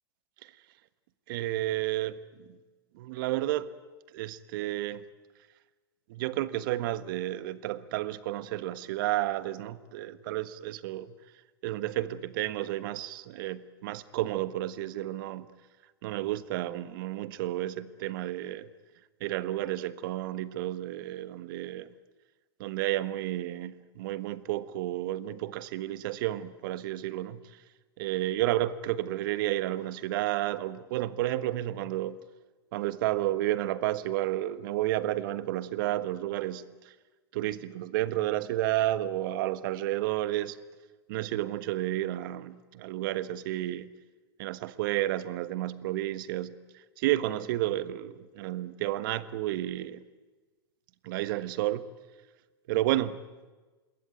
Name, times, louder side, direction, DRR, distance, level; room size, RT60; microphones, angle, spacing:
voice 1, 1.3-2.2 2.5-2.6 2.9-3.7 4.1-5.0 6.1-11.1 11.6-15.5 16.0-18.7 19.2-21.9 22.6-27.6 28.0-32.2 32.7-36.9 37.3-40.6 41.1-43.9 44.4-50.0 51.0-51.9 52.7-53.2, right 14 dB, 55° right, 1.4 m, -31 dB
27.5 x 21.0 x 9.5 m
hypercardioid pair, 105°, 13 cm